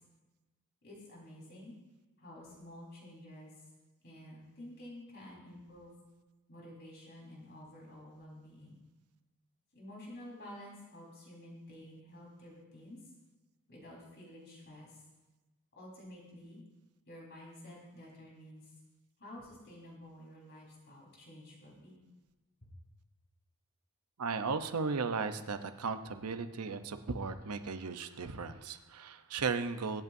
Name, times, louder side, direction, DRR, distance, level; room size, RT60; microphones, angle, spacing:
voice 1, 0.8-1.7 2.2-3.5 4.0-6.0 6.5-8.8 9.7-13.1 13.7-15.0 15.7-16.6 17.1-18.7 19.2-22.0, left 1 dB, 50° left, -4 dB, 4.4 m, -51 dB
voice 2, 24.2-30.0, right 4 dB, 85° right, 9 dB, 0.8 m, -36 dB
24.0 x 8.2 x 2.7 m, 1.1 s
head